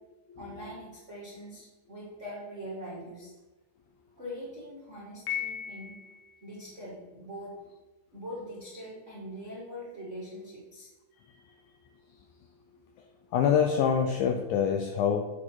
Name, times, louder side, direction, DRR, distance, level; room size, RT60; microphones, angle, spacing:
voice 1, 0.4-3.3 4.2-5.9 6.4-7.5 8.1-10.9, equal, 75° right, -7 dB, 0.6 m, -42 dB
Piano, 5.3-6.4, left 10 dB, 65° left, 2.0 m, -36 dB
voice 2, 11.3-11.7 13.0-15.3, left 7 dB, 90° left, 4 dB, 1.7 m, -27 dB
8.2 x 4.9 x 4.4 m, 1.1 s
omnidirectional pair, 4.1 m